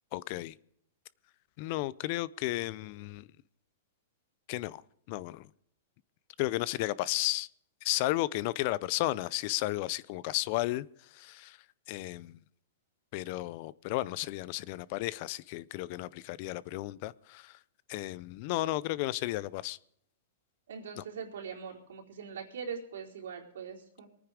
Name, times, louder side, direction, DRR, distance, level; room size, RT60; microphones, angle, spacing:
voice 1, 0.1-0.5 1.6-3.3 4.5-4.8 5.1-5.5 6.4-7.5 7.8-10.9 11.1-11.6 11.9-12.4 13.1-17.6 17.9-19.8 21.0-21.1, left 17 dB, 45° left, 21 dB, 0.5 m, -33 dB
voice 2, 20.7-24.1, right 6 dB, 80° right, -1 dB, 4.2 m, -42 dB
23.0 x 9.7 x 5.0 m, 0.70 s
hypercardioid pair, 150°, 0 cm